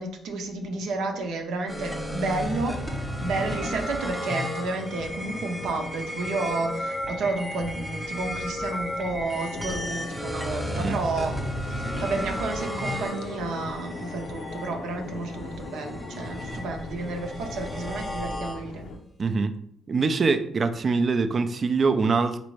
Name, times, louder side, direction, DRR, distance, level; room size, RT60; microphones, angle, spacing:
voice 1, 0.0-18.9, right 3 dB, 80° right, 4 dB, 0.7 m, -31 dB
sound 1, 1.7-18.9, equal, ahead, 0.9 m, -34 dB
sound 2, 4.5-19.0, left 2 dB, 80° left, 0.5 m, -40 dB
voice 2, 19.2-19.6 19.9-22.4, right 4 dB, 40° right, 9 dB, 0.4 m, -24 dB
4.0 x 3.3 x 3.2 m, 0.69 s
cardioid pair, 90°, 0 cm